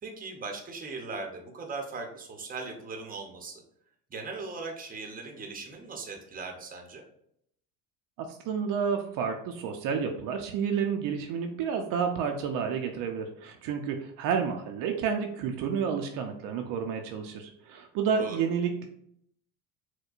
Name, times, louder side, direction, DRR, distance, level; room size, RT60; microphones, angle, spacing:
voice 1, 0.0-3.6 4.1-7.0 18.1-18.4, right 3 dB, 25° right, 3 dB, 0.7 m, -39 dB
voice 2, 8.2-18.9, right 6 dB, 60° right, 4 dB, 0.5 m, -30 dB
4.4 x 2.2 x 2.4 m, 0.70 s
supercardioid pair, 105°, 37 cm